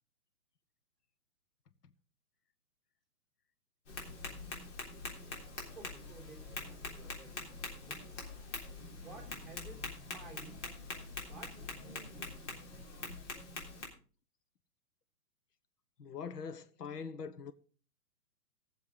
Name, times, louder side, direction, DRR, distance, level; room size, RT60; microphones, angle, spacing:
Tap, 3.9-13.9, left 3 dB, 45° left, 3.6 m, -44 dB
voice 1, 5.7-8.3 8.9-10.6 11.2-12.7, right 3 dB, ahead, 4.0 m, -55 dB
voice 2, 16.0-17.5, left 6 dB, 75° left, 1.3 m, -43 dB
19.0 x 7.2 x 3.8 m
hypercardioid pair, 145°, 47 cm